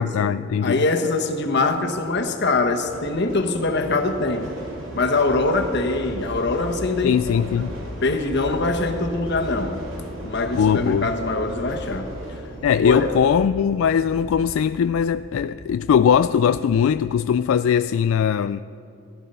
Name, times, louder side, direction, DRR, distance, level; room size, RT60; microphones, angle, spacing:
voice 1, 0.0-0.8 7.0-7.7 10.5-11.1 12.6-18.6, left 7 dB, 80° left, 0.3 m, -20 dB
voice 2, 0.6-4.5 4.9-7.4 8.0-9.9 10.2-12.1 12.8-13.1, left 2 dB, 55° left, 1.3 m, -23 dB
sound 1, 1.1-17.3, equal, 70° right, 3.1 m, -37 dB
17.5 x 12.0 x 5.5 m
head